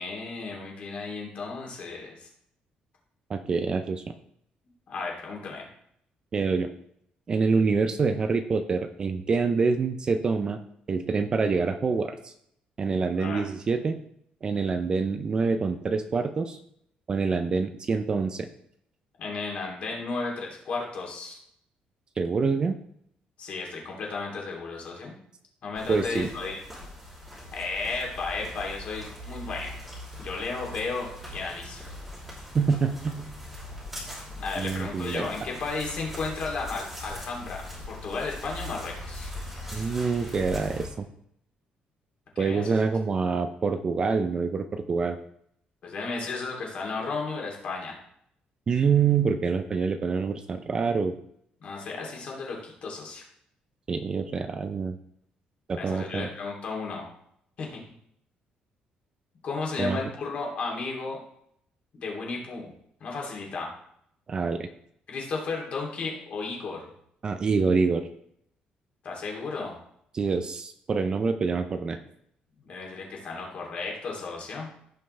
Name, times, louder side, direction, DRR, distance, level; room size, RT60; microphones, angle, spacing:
voice 1, 0.0-2.3 4.9-5.7 13.2-13.4 19.2-21.4 23.4-25.1 25.6-26.6 27.5-29.8 30.2-31.8 34.4-39.3 42.3-42.7 45.8-48.0 51.6-53.2 55.8-57.1 57.6-57.8 59.4-61.2 61.9-62.7 63.0-63.7 65.1-66.8 69.0-69.7 72.6-74.7, left 4 dB, 45° left, -1 dB, 3.0 m, -34 dB
voice 2, 3.3-4.1 6.3-6.7 7.3-10.6 10.9-12.3 12.8-14.0 14.4-16.6 17.1-18.5 22.2-22.8 25.9-26.3 32.5-33.3 34.6-35.3 39.7-41.1 42.4-45.2 48.7-51.1 53.9-55.0 55.7-56.3 59.8-60.0 64.3-64.7 67.2-68.1 70.1-72.0, right 5 dB, 30° right, 9 dB, 0.6 m, -26 dB
sound 1, 25.8-40.9, left 1 dB, 5° right, 3.0 m, -41 dB
16.0 x 5.6 x 3.3 m, 0.70 s
cardioid pair, 165°, 3 cm